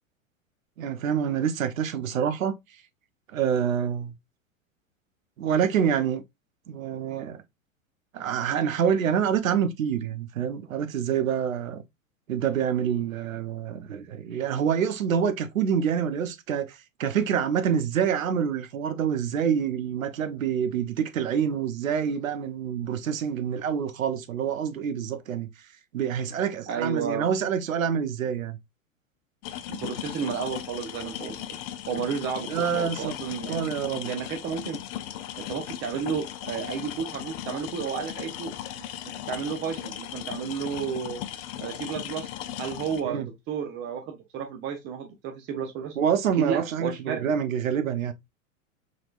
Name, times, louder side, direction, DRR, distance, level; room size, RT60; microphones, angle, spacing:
voice 1, 0.8-2.6 3.3-4.1 5.4-6.2 6.7-7.4 8.1-11.8 12.3-25.5 25.9-28.6 32.5-33.1 33.5-34.1 43.0-43.3 46.0-48.1, right 8 dB, 75° right, 0.7 m, -26 dB
voice 2, 26.7-27.3 29.7-31.4 31.9-33.7 34.0-34.8 35.4-38.5 39.3-41.2 41.6-42.3 42.6-46.0 46.4-47.4, right 7 dB, 30° right, 0.7 m, -32 dB
sound 1, 29.4-43.0, left 12 dB, 35° left, 0.4 m, -37 dB
4.1 x 3.1 x 2.4 m
figure-of-eight pair, 95°, 41 cm